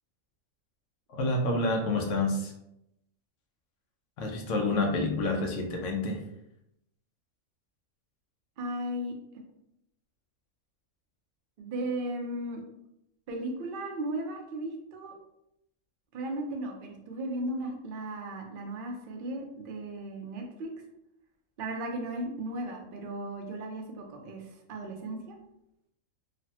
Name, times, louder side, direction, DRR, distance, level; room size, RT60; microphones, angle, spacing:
voice 1, 1.1-2.5 4.2-6.2, left 2 dB, 70° left, 1 dB, 0.9 m, -28 dB
voice 2, 8.6-9.1 11.6-12.6 13.3-15.1 16.1-20.7 21.6-25.4, right 1 dB, 60° right, 1 dB, 0.6 m, -36 dB
3.2 x 2.0 x 2.7 m, 0.83 s
omnidirectional pair, 1.4 m